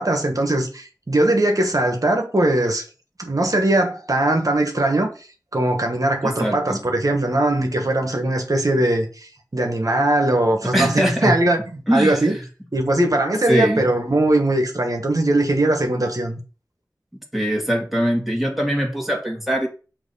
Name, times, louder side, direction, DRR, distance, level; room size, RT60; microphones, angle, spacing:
voice 1, 0.0-2.9 3.2-5.1 5.5-9.1 9.5-12.3 12.7-16.4, right 1 dB, 55° right, 1.4 m, -20 dB
voice 2, 6.2-6.8 10.7-11.3 11.9-12.3 13.5-13.8 17.3-19.7, equal, ahead, 2.1 m, -22 dB
6.2 x 3.0 x 5.6 m
wide cardioid pair, 45°, 7 cm